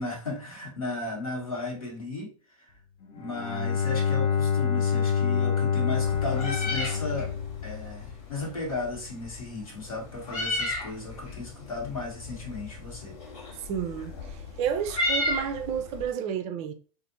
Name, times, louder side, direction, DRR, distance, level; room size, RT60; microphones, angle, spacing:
voice 1, 0.0-2.3 3.1-7.3 7.6-13.2, left 2 dB, 85° left, 1.3 m, -35 dB
Bowed string instrument, 3.2-8.1, left 7 dB, 35° left, 0.6 m, -27 dB
Meow, 6.0-16.1, left 2 dB, 65° left, 1.3 m, -34 dB
voice 2, 13.6-16.7, right 8 dB, 35° right, 0.4 m, -31 dB
2.5 x 2.5 x 2.6 m
hypercardioid pair, 100°, 18 cm